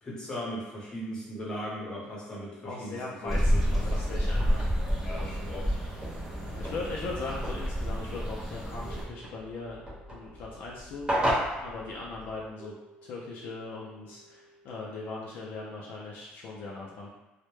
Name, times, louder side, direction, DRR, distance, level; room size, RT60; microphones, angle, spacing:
voice 1, 0.0-4.3 5.0-5.7, equal, 20° left, -6 dB, 0.8 m, -38 dB
voice 2, 2.6-4.6 6.4-9.8 10.1-11.1 11.6-12.8 13.0-17.1, left 3 dB, 60° left, -3 dB, 0.4 m, -39 dB
sound 1, 3.3-9.0, equal, 5° right, 0.5 m, -29 dB
sound 2, 3.8-12.5, equal, 25° right, 0.9 m, -36 dB
sound 3, 5.1-16.1, right 4 dB, 80° right, 0.7 m, -58 dB
2.1 x 2.0 x 3.0 m, 1.1 s
cardioid pair, 140°, 3 cm